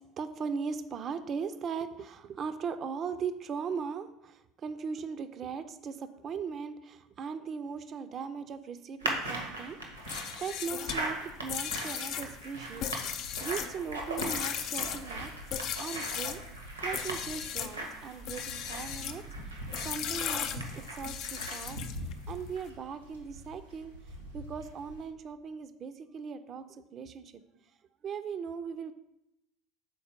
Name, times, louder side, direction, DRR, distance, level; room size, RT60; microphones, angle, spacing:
voice 1, 0.2-16.4 16.8-23.9 24.3-27.4 28.0-28.9, right 6 dB, 40° right, 10 dB, 0.5 m, -39 dB
sound 1, 9.0-25.0, right 1 dB, 90° right, 1.2 m, -40 dB
sound 2, 10.0-16.4 16.9-17.8 18.2-19.2 19.7-22.1, left 9 dB, 50° left, 0.4 m, -37 dB
5.3 x 4.2 x 5.2 m, 0.84 s
figure-of-eight pair, 70°, 0 cm